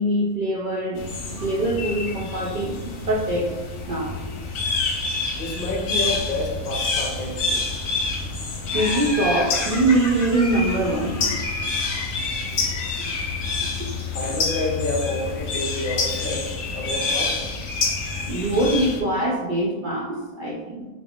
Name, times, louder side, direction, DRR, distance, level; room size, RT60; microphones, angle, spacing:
voice 1, 0.0-3.5 3.8-4.1 8.7-11.3 18.3-20.9, right 1 dB, 70° right, -4 dB, 0.4 m, -23 dB
sound 1, 1.0-19.0, left 3 dB, 70° left, 1.0 m, -28 dB
voice 2, 5.3-7.6 12.5-12.7 14.1-17.5, left 2 dB, 45° left, -2 dB, 0.8 m, -29 dB
Laughter, 8.7-12.0, left 2 dB, 25° left, 0.4 m, -32 dB
3.9 x 3.4 x 2.3 m, 1.2 s
omnidirectional pair, 1.4 m